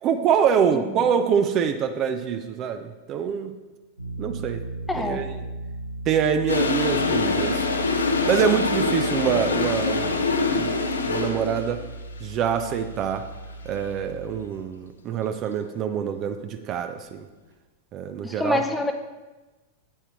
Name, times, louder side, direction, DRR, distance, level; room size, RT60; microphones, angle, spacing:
voice 1, 0.0-3.6 4.2-4.6 5.0-5.3 6.1-7.6 8.3-10.7 11.1-11.8 12.2-13.3 13.7-17.3 17.9-18.6, right 7 dB, 35° right, 9 dB, 0.4 m, -25 dB
sound 1, 4.0-14.4, right 1 dB, 80° right, 0.6 m, -37 dB
voice 2, 4.9-5.3 9.4-9.5 18.2-18.9, left 2 dB, 10° left, 6 dB, 0.6 m, -27 dB
Toilet flush, 6.5-11.7, left 3 dB, 75° left, 0.6 m, -24 dB
8.7 x 8.0 x 3.0 m, 1.2 s
figure-of-eight pair, 90°, 0 cm